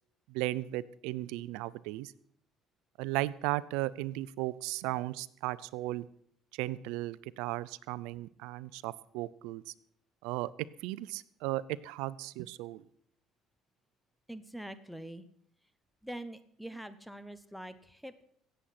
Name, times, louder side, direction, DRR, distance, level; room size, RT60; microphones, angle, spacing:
voice 1, 0.3-2.1 3.0-6.0 6.6-9.6 10.2-10.5 10.8-12.8, right 17 dB, 85° right, 19 dB, 0.5 m, -36 dB
voice 2, 14.3-15.2 16.0-18.2, right 1 dB, ahead, 13 dB, 0.8 m, -44 dB
16.5 x 7.8 x 5.8 m, 0.65 s
supercardioid pair, 95°, 0 cm